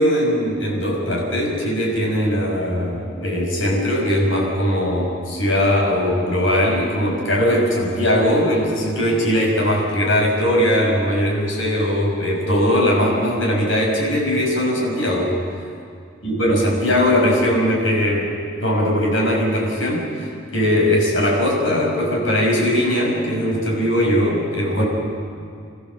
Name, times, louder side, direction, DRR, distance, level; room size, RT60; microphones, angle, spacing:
voice 1, 0.0-15.3 16.2-18.3 18.6-20.1 20.5-24.9, equal, 85° left, -1 dB, 6.1 m, -19 dB
29.0 x 14.5 x 7.2 m, 2.3 s
head